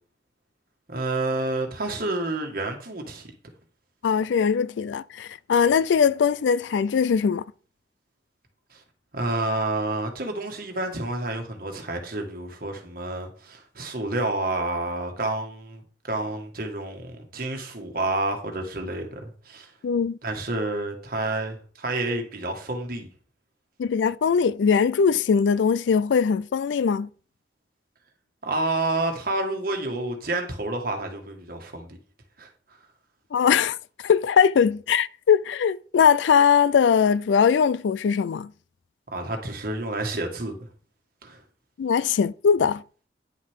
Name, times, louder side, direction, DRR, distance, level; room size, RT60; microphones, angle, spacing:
voice 1, 0.9-3.3 8.7-8.8 9.1-15.8 16.1-19.7 20.2-23.1 28.4-32.0 32.4-32.5 39.1-40.6 41.2-41.4, right 2 dB, 55° right, 1.8 m, -29 dB
voice 2, 4.0-7.4 19.8-20.2 23.8-27.1 33.3-33.8 34.0-38.5 41.8-42.8, left 6 dB, 85° left, 0.4 m, -21 dB
10.0 x 6.4 x 3.6 m
head